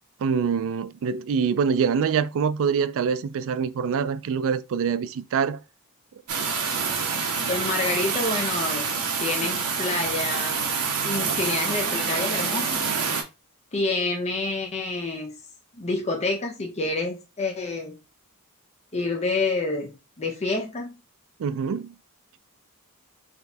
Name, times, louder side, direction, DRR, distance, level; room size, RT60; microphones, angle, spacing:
voice 1, 0.2-5.6 21.4-21.9, right 6 dB, 65° right, 0.3 m, -25 dB
sound 1, 6.3-13.2, right 5 dB, 80° right, 1.0 m, -27 dB
voice 2, 7.5-8.9 9.2-10.6 11.0-12.8 13.7-15.3 15.7-18.0 18.9-21.0, left 3 dB, 30° left, 0.6 m, -28 dB
4.1 x 2.7 x 3.4 m
head